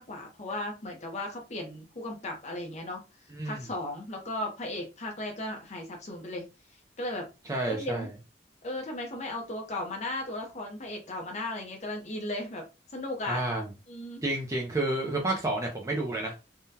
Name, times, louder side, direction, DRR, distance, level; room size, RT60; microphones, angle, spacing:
voice 1, 0.0-3.0 3.4-6.5 7.0-7.3 7.6-8.1 8.6-12.6 12.9-13.4 13.9-14.2, left 1 dB, 40° left, 2 dB, 0.7 m, -36 dB
voice 2, 3.3-3.6 7.4-8.1 13.3-13.7 14.2-16.3, right 2 dB, 20° right, 0 dB, 0.5 m, -30 dB
3.6 x 2.2 x 2.7 m, 0.29 s
head